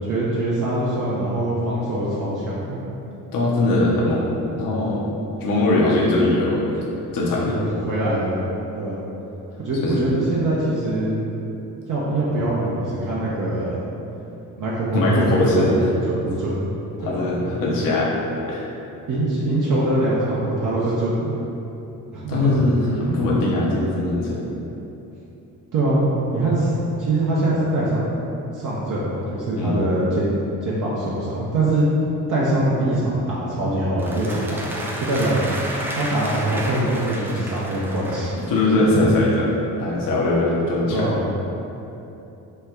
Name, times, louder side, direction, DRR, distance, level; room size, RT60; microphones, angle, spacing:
voice 1, 0.0-2.8 7.5-9.1 9.6-11.2 11.9-13.8 14.6-15.7 16.1-16.7 17.0-17.2 19.1-21.3 22.1-22.6 25.7-26.0 26.3-28.1 28.5-30.3 30.6-31.8 32.3-35.4 35.9-38.4 38.7-39.1 40.9-41.2, right 1 dB, 45° right, -7 dB, 0.7 m, -23 dB
voice 2, 3.3-5.1 5.4-6.7 7.1-7.6 9.8-10.1 14.9-15.9 17.0-18.1 18.5-18.6 22.3-24.4 29.6-29.8 38.4-39.5 39.8-41.1, left 2 dB, 50° left, -5 dB, 0.7 m, -21 dB
sound 1, 34.0-38.8, right 1 dB, 5° right, 0.3 m, -32 dB
3.1 x 2.1 x 3.5 m, 3.0 s
hypercardioid pair, 50°, 44 cm